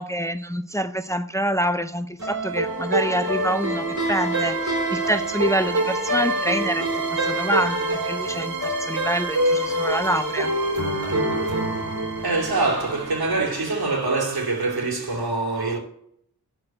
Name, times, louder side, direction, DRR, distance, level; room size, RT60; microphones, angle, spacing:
voice 1, 0.0-10.5, equal, 10° left, 0.6 m, -26 dB
sound 1, 2.2-13.4, right 1 dB, 55° right, 4.0 m, -25 dB
voice 2, 12.2-15.8, right 3 dB, 80° right, 2.8 m, -24 dB
12.0 x 4.6 x 7.6 m
wide cardioid pair, 80°, 37 cm